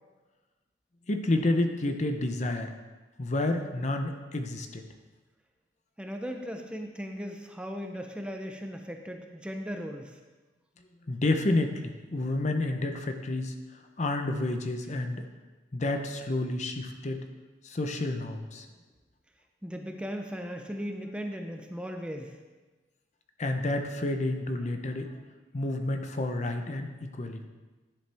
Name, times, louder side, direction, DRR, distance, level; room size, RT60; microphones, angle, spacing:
voice 1, 1.1-2.7 3.2-4.8 11.1-13.6 14.0-15.2 15.7-17.2 17.6-18.7 23.4-25.1 25.5-26.9 27.1-27.5, left 2 dB, 40° left, 6 dB, 0.7 m, -29 dB
voice 2, 6.0-10.2 19.6-22.3, equal, 5° right, 3 dB, 0.5 m, -37 dB
11.0 x 7.0 x 3.4 m, 1.2 s
head